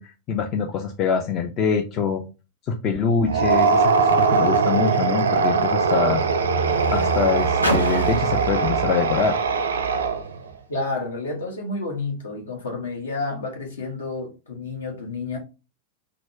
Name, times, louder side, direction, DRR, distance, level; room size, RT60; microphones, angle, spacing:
voice 1, 0.0-2.2 2.7-6.2 6.9-9.4, left 6 dB, 35° left, 0.5 m, -24 dB
sound 1, 3.2-10.4, right 5 dB, 70° right, 0.4 m, -21 dB
Car, 4.3-10.6 11.4-11.5, left 1 dB, 85° left, 0.8 m, -33 dB
voice 2, 10.7-15.4, left 3 dB, 65° left, 1.2 m, -30 dB
4.1 x 2.2 x 4.5 m
figure-of-eight pair, 90°, 0 cm